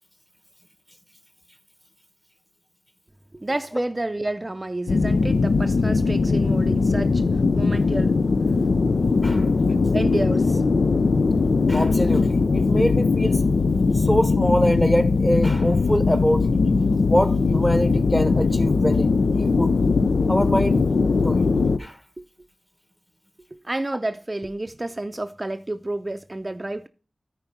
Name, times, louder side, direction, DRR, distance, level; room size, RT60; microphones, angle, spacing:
voice 1, 3.3-8.2 8.7-8.8 9.7-10.6 20.4-20.5 22.2-22.3 23.5-26.9, right 1 dB, 35° right, 0.5 m, -30 dB
sound 1, 4.9-21.8, left 4 dB, 80° left, 0.4 m, -20 dB
voice 2, 11.7-13.4 13.9-16.5 17.1-19.7 20.3-20.8 21.2-21.5 21.8-22.0, equal, 15° left, 1.3 m, -24 dB
9.7 x 4.5 x 5.7 m
cardioid pair, 40°, 0 cm